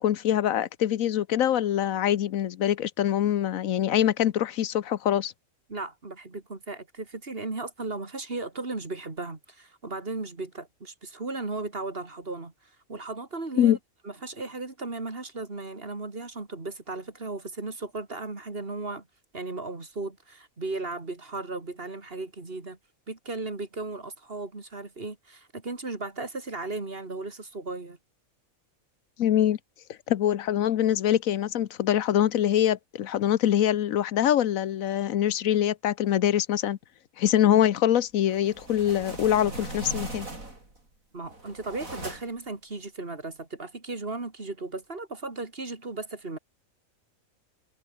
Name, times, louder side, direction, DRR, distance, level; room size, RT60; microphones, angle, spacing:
voice 1, 0.0-5.3 13.6-13.8 29.2-29.6 30.1-36.8 37.2-40.3, left 11 dB, 75° left, 1.2 m, -24 dB
voice 2, 5.7-12.5 12.9-13.8 14.0-19.1 19.3-22.8 23.1-28.0 41.1-46.4, right 3 dB, 45° right, 2.9 m, -36 dB
sound 1, 38.3-40.8 41.2-42.5, right 2 dB, 75° right, 6.4 m, -39 dB
omnidirectional pair, 1.4 m